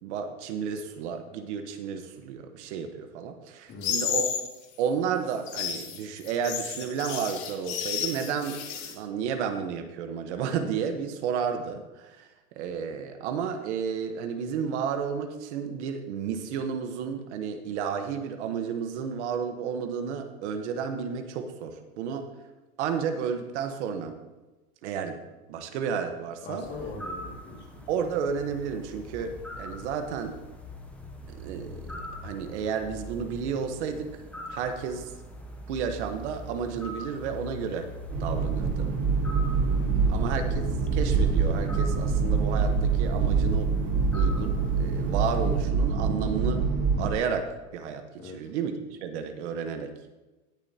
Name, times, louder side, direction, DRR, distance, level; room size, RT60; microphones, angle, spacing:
voice 1, 0.0-4.3 4.8-22.3 22.8-24.2 24.8-25.2 25.5-26.7 27.9-30.4 31.3-31.9 32.2-34.1 34.5-35.1 35.7-37.9 38.2-38.9 40.1-40.7 40.9-43.7 44.1-46.6 47.0-49.9, right 7 dB, 55° right, 7 dB, 1.2 m, -32 dB
sound 1, 3.8-4.5 5.3-8.9, left 8 dB, 50° left, 2.2 m, -31 dB
voice 2, 26.4-27.7 39.8-40.1 48.2-48.4, left 3 dB, 25° left, 0 dB, 2.2 m, -40 dB
sound 2, 26.6-45.7, left 1 dB, 5° left, 0.7 m, -43 dB
sound 3, 38.1-47.1, right 5 dB, 30° right, 3.3 m, -25 dB
18.0 x 7.1 x 2.8 m, 1.1 s
supercardioid pair, 160°, 41 cm